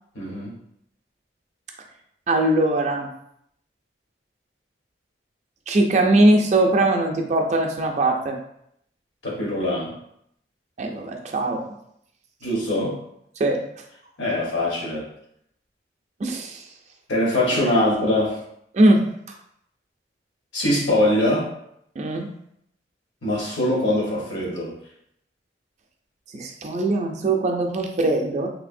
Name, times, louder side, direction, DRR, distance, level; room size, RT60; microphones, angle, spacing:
voice 1, 0.1-0.5 9.2-9.9 12.4-13.0 14.2-15.1 17.1-18.4 20.5-21.5 23.2-24.7, left 1 dB, 80° left, -4 dB, 1.1 m, -22 dB
voice 2, 2.3-3.1 5.7-8.4 10.8-11.6 13.4-13.6 16.2-16.6 18.7-19.1 22.0-22.3 26.3-28.5, right 2 dB, 40° right, 2 dB, 0.3 m, -20 dB
3.2 x 2.6 x 2.5 m, 0.73 s
head